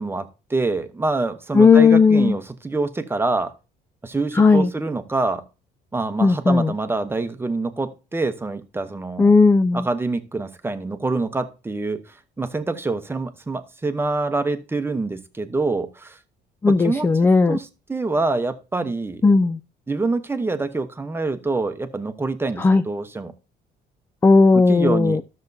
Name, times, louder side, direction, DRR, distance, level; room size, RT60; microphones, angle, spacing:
voice 1, 0.0-3.5 4.0-5.4 5.9-9.3 9.7-16.2 16.7-17.1 17.5-19.3 19.9-23.3 24.5-25.2, right 3 dB, 15° right, 9 dB, 0.9 m, -26 dB
voice 2, 1.5-2.4 4.3-4.7 6.2-6.7 9.2-9.9 16.6-17.6 19.2-19.6 22.6-22.8 24.2-25.2, left 4 dB, 15° left, 9 dB, 0.3 m, -15 dB
13.0 x 6.6 x 2.7 m, 0.31 s
cardioid pair, 110°, 17 cm